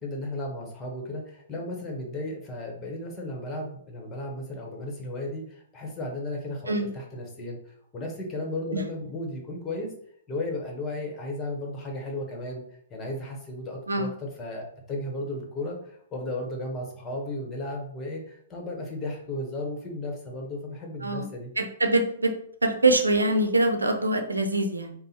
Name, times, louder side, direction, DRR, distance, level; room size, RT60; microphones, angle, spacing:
voice 1, 0.0-7.6 7.9-9.9 10.3-12.6 12.9-21.5, left 1 dB, 20° left, 0 dB, 1.3 m, -34 dB
voice 2, 21.6-22.3 22.6-24.9, right 2 dB, 80° right, 5 dB, 0.7 m, -24 dB
5.3 x 2.3 x 4.2 m, 0.66 s
figure-of-eight pair, 115°, 0 cm